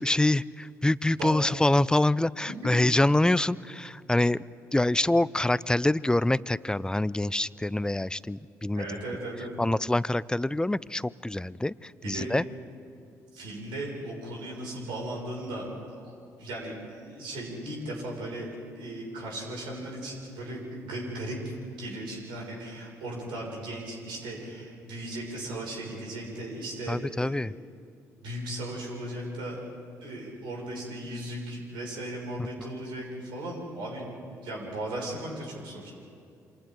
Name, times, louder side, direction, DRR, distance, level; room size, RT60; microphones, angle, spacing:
voice 1, 0.0-4.4 4.7-9.0 9.6-12.4 26.9-27.5, left 1 dB, 10° left, 20 dB, 0.5 m, -25 dB
voice 2, 1.1-1.4 2.5-2.7 8.7-9.6 12.0-12.3 13.3-16.1 16.4-18.5 18.8-27.4 28.2-29.6 30.0-34.1 34.4-35.9, right 1 dB, 70° right, -2 dB, 6.3 m, -37 dB
28.0 x 26.0 x 3.9 m, 2.4 s
hypercardioid pair, 45°, 8 cm